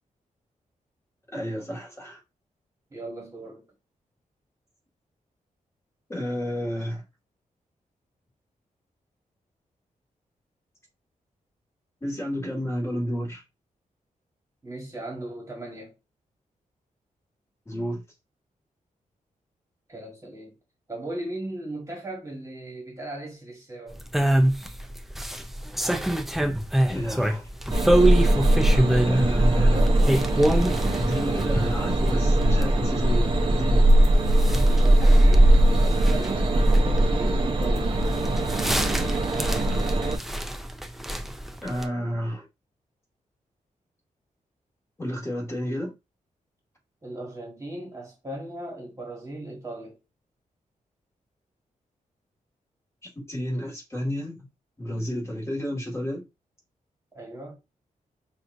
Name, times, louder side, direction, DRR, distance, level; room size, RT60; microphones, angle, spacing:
voice 1, 1.3-2.2 6.1-7.0 12.0-13.4 17.7-18.0 26.9-27.5 29.0-29.8 31.0-33.9 41.6-42.4 45.0-45.9 53.3-54.5 54.8-56.2, equal, 20° left, 1.8 m, -30 dB
voice 2, 2.9-3.6 14.6-15.9 19.9-20.5 20.9-24.0 29.1-30.1 34.6-38.0 47.0-50.0 57.1-57.6, right 1 dB, 20° right, 1.4 m, -38 dB
sound 1, 23.9-41.9, right 1 dB, ahead, 0.4 m, -27 dB
sound 2, 27.7-40.2, right 1 dB, 40° right, 0.7 m, -20 dB
5.9 x 2.5 x 2.5 m
wide cardioid pair, 145°, 14 cm